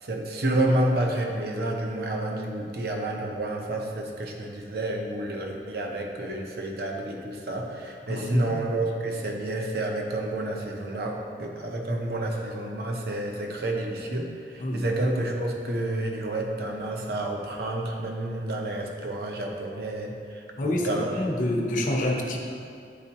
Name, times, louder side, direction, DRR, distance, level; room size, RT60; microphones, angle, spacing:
voice 1, 0.0-21.2, right 1 dB, 60° right, 1 dB, 0.8 m, -29 dB
voice 2, 8.1-8.7 14.6-14.8 20.6-22.4, left 1 dB, 45° left, 1 dB, 0.8 m, -27 dB
10.5 x 4.4 x 2.9 m, 2.3 s
head